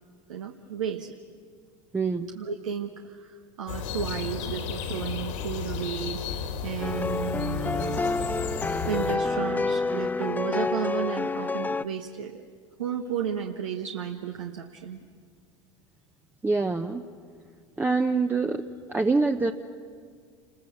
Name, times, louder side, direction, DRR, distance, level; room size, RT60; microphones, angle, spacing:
voice 1, 0.3-1.1 2.3-6.4 6.6-8.2 8.9-12.4 12.8-15.0, right 8 dB, 80° right, 3 dB, 1.3 m, -33 dB
voice 2, 1.9-2.3 16.4-17.0 17.8-18.6 18.9-19.5, right 3 dB, 10° right, 5 dB, 0.9 m, -25 dB
sound 1, 3.7-9.2, left 6 dB, 70° left, 2.7 m, -34 dB
sound 2, 6.8-11.9, left 3 dB, 10° left, 0.6 m, -28 dB
29.0 x 21.0 x 8.0 m, 2.1 s
hypercardioid pair, 85°, 16 cm